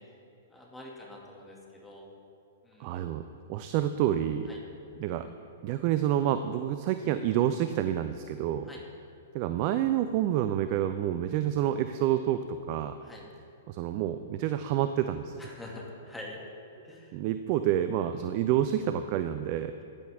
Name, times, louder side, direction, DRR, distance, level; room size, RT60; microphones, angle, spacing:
voice 1, 0.5-2.1 2.6-3.0 4.5-4.6 8.7-8.8 13.0-13.2 15.4-16.4 16.8-17.1 18.2-18.3, left 1 dB, 10° left, -3 dB, 2.2 m, -45 dB
voice 2, 2.8-3.2 3.5-4.5 5.0-5.3 5.6-8.7 9.3-12.9 13.7-15.4 17.1-19.8, right 11 dB, 40° right, 10 dB, 0.5 m, -28 dB
15.0 x 10.5 x 3.6 m, 2.6 s
figure-of-eight pair, 110°, 0 cm